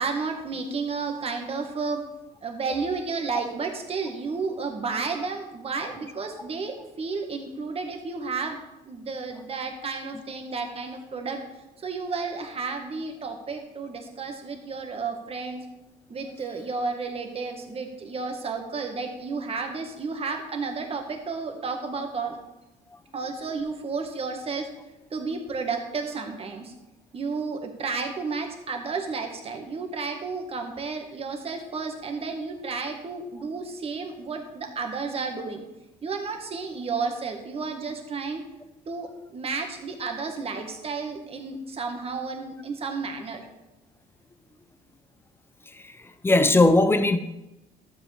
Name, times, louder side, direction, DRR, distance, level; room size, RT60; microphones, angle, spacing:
voice 1, 0.0-2.0 2.4-8.6 8.8-11.4 11.8-15.6 16.1-22.4 23.1-24.7 25.1-26.7 27.1-35.6 36.0-38.4 38.9-43.4, right 4 dB, 35° right, 1.6 m, -32 dB
voice 2, 45.7-47.2, left 2 dB, 15° left, 0.6 m, -20 dB
12.5 x 7.7 x 3.4 m
cardioid pair, 110°, 17 cm